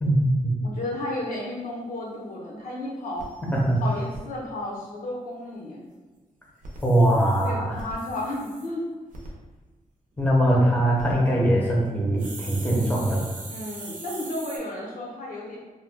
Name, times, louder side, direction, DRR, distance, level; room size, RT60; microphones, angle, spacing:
voice 1, 0.0-0.5 3.5-3.8 6.8-7.7 10.2-13.2, right 1 dB, 10° left, -4 dB, 0.6 m, -21 dB
voice 2, 0.6-3.3 3.8-5.8 7.4-8.9 13.5-15.6, left 1 dB, 85° left, -3 dB, 0.7 m, -33 dB
sound 1, 2.0-2.1 2.5-2.6 2.8-2.9 3.2-4.2 6.5-8.7 9.1-9.3 10.7-11.1 12.2-14.6, right 2 dB, 70° right, 0.6 m, -41 dB
2.7 x 2.2 x 3.4 m, 1.2 s
wide cardioid pair, 145°, 14 cm